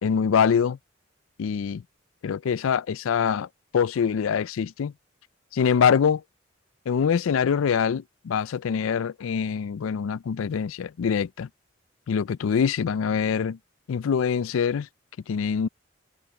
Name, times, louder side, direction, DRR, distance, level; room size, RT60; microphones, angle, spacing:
voice 1, 0.0-0.8 1.4-1.8 2.2-3.5 3.7-4.9 5.5-6.2 6.9-11.5 12.1-13.6 13.9-14.9 15.3-15.7, left 7 dB, 90° left, 0.4 m, -24 dB
head